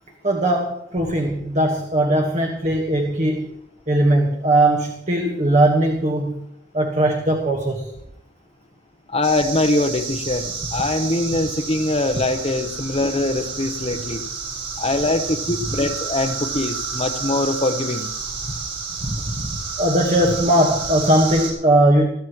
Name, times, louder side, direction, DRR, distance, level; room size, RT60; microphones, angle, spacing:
voice 1, 0.2-3.5 3.9-6.4 6.7-7.9 19.0-22.1, right 1 dB, 40° right, 3 dB, 1.5 m, -19 dB
voice 2, 9.1-14.2 14.8-18.1, left 2 dB, 35° left, 8 dB, 0.9 m, -22 dB
sound 1, 9.2-21.5, right 5 dB, 85° right, 7.6 m, -30 dB
21.0 x 15.5 x 3.1 m, 0.77 s
head